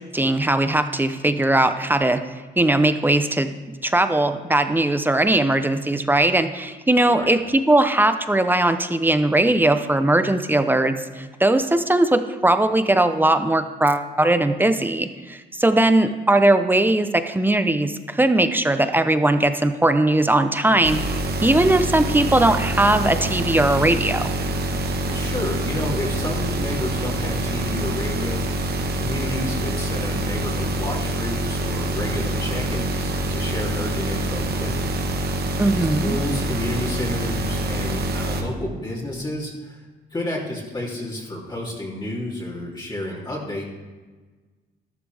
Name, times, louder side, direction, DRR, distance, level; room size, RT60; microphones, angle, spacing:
voice 1, 0.1-2.2 2.6-3.5 3.8-24.3 35.6-36.2, right 1 dB, 10° right, 9 dB, 0.8 m, -19 dB
sound 1, 20.8-38.4, right 1 dB, 55° right, 1.4 m, -26 dB
voice 2, 25.1-35.0 36.0-39.8 40.1-43.7, left 1 dB, 20° left, -5 dB, 3.2 m, -30 dB
12.5 x 12.5 x 3.5 m, 1.3 s
cardioid pair, 90°, 20 cm